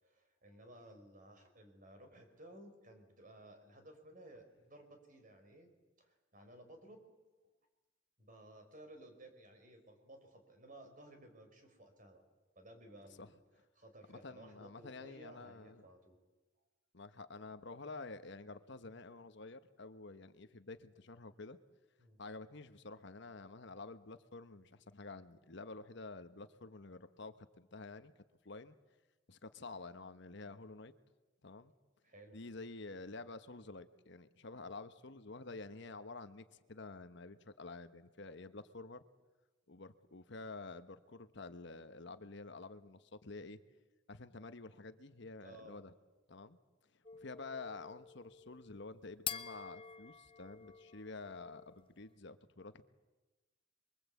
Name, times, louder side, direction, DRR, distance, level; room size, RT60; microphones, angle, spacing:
voice 1, 0.0-5.7 6.0-7.0 8.2-12.2 12.5-13.3 13.8-16.2 22.0-22.2 32.0-32.4 45.4-45.7, right 1 dB, 40° right, 5 dB, 4.7 m, -57 dB
voice 2, 14.1-15.8 16.9-21.6 22.2-28.1 28.4-28.8 29.3-30.9 31.4-31.7 32.3-39.0 39.7-43.6 44.1-45.9 46.3-46.6 47.1-52.8, left 3 dB, 60° left, 11 dB, 1.1 m, -49 dB
sound 1, 47.0-51.9, left 8 dB, 25° left, 0.8 m, -48 dB
27.5 x 23.0 x 8.4 m, 1.2 s
head